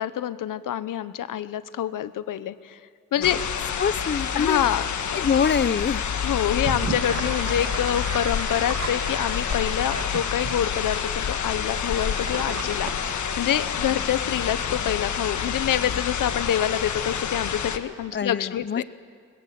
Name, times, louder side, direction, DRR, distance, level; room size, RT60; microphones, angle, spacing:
voice 1, 0.0-2.8 3.1-3.4 4.3-5.3 6.2-18.8, left 10 dB, 80° left, 13 dB, 1.0 m, -27 dB
sound 1, 3.2-17.8, left 7 dB, 65° left, 1.5 m, -28 dB
voice 2, 3.8-4.6 5.2-6.0 18.1-18.8, left 7 dB, 35° left, 17 dB, 0.6 m, -24 dB
Gurgling / Sink (filling or washing), 6.5-14.0, right 4 dB, 45° right, 2.2 m, -35 dB
24.0 x 20.5 x 7.8 m, 2.1 s
cardioid pair, 100°, 32 cm